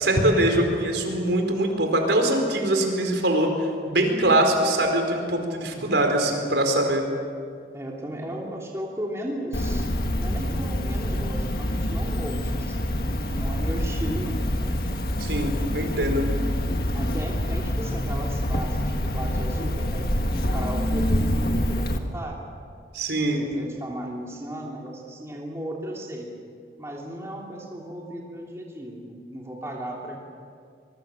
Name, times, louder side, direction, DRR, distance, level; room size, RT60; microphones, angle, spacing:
voice 1, 0.0-3.5 3.9-7.0 15.2-16.3 22.9-23.4, right 1 dB, 80° right, 3 dB, 4.4 m, -22 dB
voice 2, 5.7-6.0 7.7-9.9 10.2-14.4 16.9-20.1 20.3-22.4 23.2-26.3 26.8-30.2, right 1 dB, 15° right, -2 dB, 3.0 m, -35 dB
Cricket, 9.5-22.0, left 1 dB, 55° left, 1.8 m, -26 dB
25.0 x 22.5 x 7.7 m, 2.2 s
head